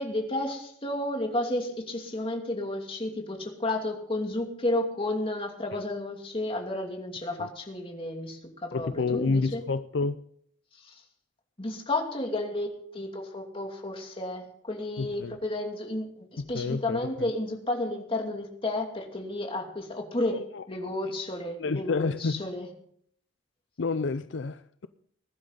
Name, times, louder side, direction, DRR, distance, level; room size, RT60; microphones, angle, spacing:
voice 1, 0.0-9.6 10.8-11.0 11.6-22.7, left 1 dB, 30° left, 2.6 m, -32 dB
voice 2, 8.7-10.2 15.0-15.4 16.5-17.3 20.3-20.6 21.6-22.4 23.8-24.9, left 4 dB, 70° left, 0.5 m, -29 dB
20.5 x 12.0 x 4.0 m
head